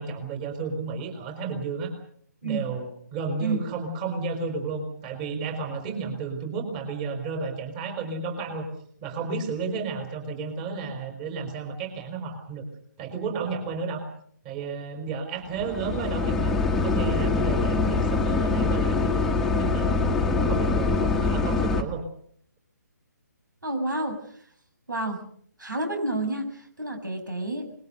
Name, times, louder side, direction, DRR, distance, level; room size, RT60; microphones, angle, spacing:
voice 1, 0.0-1.9 2.4-8.7 9.0-12.6 13.0-14.0 14.4-16.6 16.8-20.0 20.3-22.0, right 4 dB, 25° right, 5 dB, 5.1 m, -32 dB
sound 1, 15.6-21.8, left 3 dB, 5° left, 1.7 m, -24 dB
voice 2, 23.6-24.2 24.9-25.2 25.6-27.7, right 2 dB, 90° right, 6 dB, 7.3 m, -29 dB
26.0 x 22.0 x 6.6 m, 0.62 s
figure-of-eight pair, 150°, 10 cm